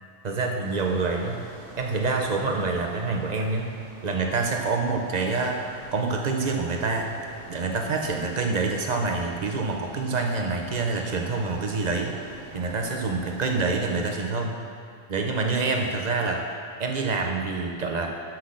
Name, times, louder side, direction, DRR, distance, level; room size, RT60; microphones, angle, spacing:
voice 1, 0.2-1.4 1.8-3.7 4.0-7.1 7.5-12.2 12.5-14.6 15.1-16.4 16.8-18.1, right 3 dB, 40° right, 1 dB, 0.8 m, -26 dB
sound 1, 0.6-13.8, right 2 dB, 70° right, 1.2 m, -46 dB
6.1 x 5.9 x 6.3 m, 2.3 s
omnidirectional pair, 1.3 m